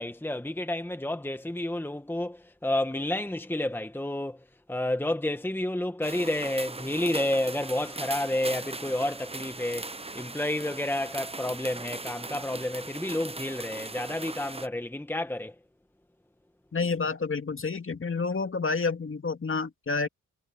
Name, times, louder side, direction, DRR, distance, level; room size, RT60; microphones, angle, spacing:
voice 1, 0.0-15.5, left 1 dB, 5° left, 1.4 m, -30 dB
sound 1, 6.0-14.7, right 3 dB, 20° right, 1.1 m, -39 dB
voice 2, 16.7-20.1, left 4 dB, 40° left, 2.4 m, -29 dB
cardioid pair, 65°, 32 cm